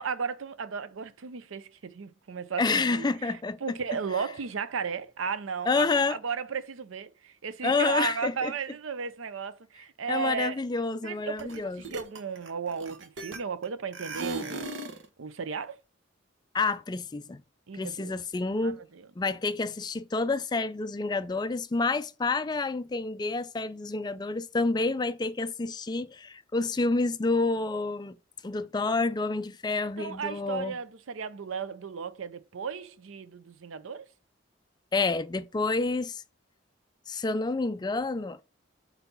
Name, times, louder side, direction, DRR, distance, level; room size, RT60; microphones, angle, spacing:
voice 1, 0.0-10.6 11.0-14.7 15.2-15.8 17.7-18.2 18.6-19.1 30.0-34.1, right 6 dB, 85° right, 0.6 m, -35 dB
voice 2, 2.6-3.6 5.7-6.2 7.6-8.5 10.1-11.8 16.5-17.4 17.7-18.8 19.2-28.2 28.4-30.8 34.9-36.2 37.1-38.4, left 3 dB, 20° left, 0.3 m, -28 dB
sound 1, 11.4-11.6 11.8-13.6 13.9-15.0, right 2 dB, 70° right, 0.9 m, -37 dB
4.5 x 4.0 x 5.5 m
head